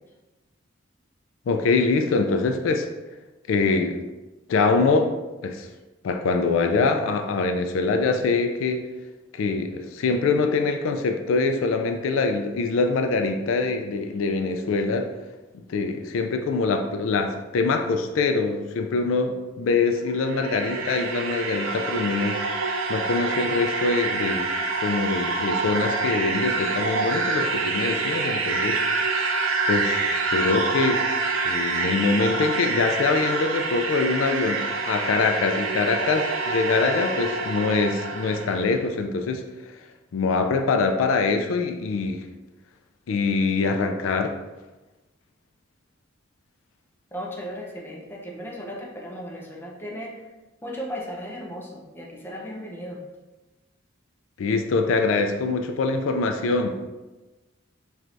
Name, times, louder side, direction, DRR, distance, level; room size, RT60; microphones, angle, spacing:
voice 1, 1.5-2.9 3.5-4.0 4.5-5.1 5.4-5.7 6.0-8.8 9.3-15.1 15.5-22.4 22.9-24.5 24.8-28.8 29.7-31.0 31.4-39.4 40.1-42.2 43.1-44.4 54.4-56.9, left 4 dB, 75° left, 5 dB, 0.3 m, -24 dB
sound 1, 20.0-38.7, right 3 dB, 85° right, 0.5 m, -27 dB
voice 2, 47.1-50.2 50.6-53.0, equal, 10° left, -3 dB, 0.7 m, -36 dB
4.5 x 3.2 x 2.5 m, 1.1 s
head